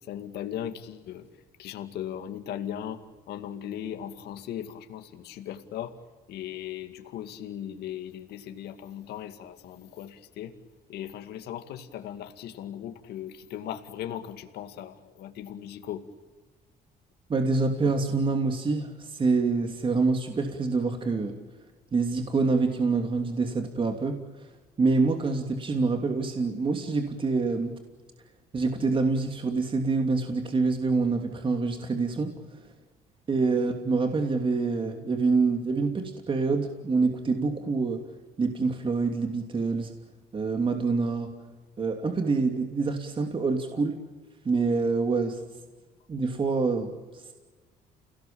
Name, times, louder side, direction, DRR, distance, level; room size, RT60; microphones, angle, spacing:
voice 1, 0.0-1.3 1.6-6.0 6.3-10.6 10.9-16.0 33.5-33.6, left 10 dB, 75° left, 7 dB, 2.3 m, -38 dB
voice 2, 17.3-21.3 21.9-24.5 24.8-27.7 28.5-32.4 33.3-38.0 38.4-39.9 40.3-41.3 41.8-44.0 44.4-45.4 46.1-47.3, right 4 dB, 30° right, 5 dB, 2.9 m, -26 dB
29.0 x 18.5 x 8.7 m, 1.3 s
cardioid pair, 110°, 17 cm